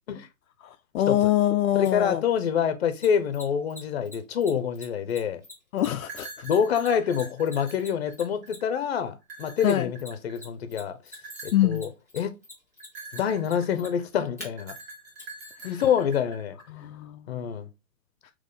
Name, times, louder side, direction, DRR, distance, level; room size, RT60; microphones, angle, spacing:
voice 1, 0.9-2.2 5.7-6.3 9.6-9.9 11.5-11.8 16.7-17.3, left 12 dB, 70° left, 0.5 m, -24 dB
voice 2, 1.7-5.4 6.4-11.0 11.4-12.4 13.1-14.7 15.6-16.6 17.3-17.7, left 8 dB, 45° left, 0.8 m, -26 dB
Mechanisms, 1.8-1.9 3.0-8.8 9.6-10.5 10.7-14.5 15.2-15.3, left 2 dB, 15° right, 0.4 m, -44 dB
sound 1, 6.0-8.7 9.2-10.5 11.1-11.8 12.8-14.0 14.6-16.7, right 3 dB, 45° right, 1.3 m, -44 dB
3.6 x 3.1 x 4.0 m
hypercardioid pair, 160°, 42 cm